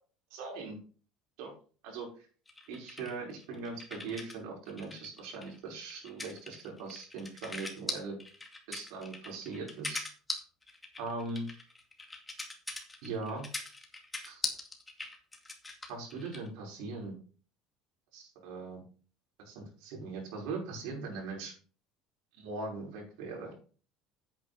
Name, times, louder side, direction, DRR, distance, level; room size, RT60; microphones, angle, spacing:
voice 1, 0.3-0.8 1.4-1.5 1.8-2.3 2.7-8.2 8.7-10.0 11.0-11.4 13.0-13.5 14.3-14.5 15.9-17.1 18.1-18.8 19.4-21.5 22.3-23.5, right 3 dB, 75° right, -1 dB, 5.1 m, -40 dB
sound 1, 2.5-4.4 4.7-16.5, left 2 dB, 10° left, 2.4 m, -41 dB
9.6 x 8.8 x 4.1 m, 0.41 s
supercardioid pair, 120°, 0 cm